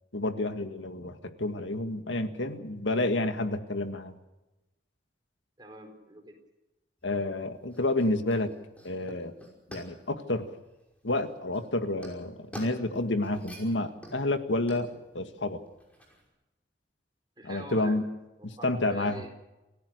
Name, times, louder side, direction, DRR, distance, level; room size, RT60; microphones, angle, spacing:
voice 1, 0.1-4.2 7.0-8.5 8.8-9.3 9.7-10.5 11.0-15.6 17.4-18.0 18.4-19.2, left 2 dB, 90° left, 8 dB, 1.9 m, -30 dB
voice 2, 5.6-6.4 17.4-18.1 18.4-19.3, right 1 dB, 25° right, 4 dB, 4.4 m, -44 dB
sound 1, 7.0-16.3, equal, 5° left, 5.6 m, -49 dB
28.0 x 16.0 x 6.6 m, 1.0 s
head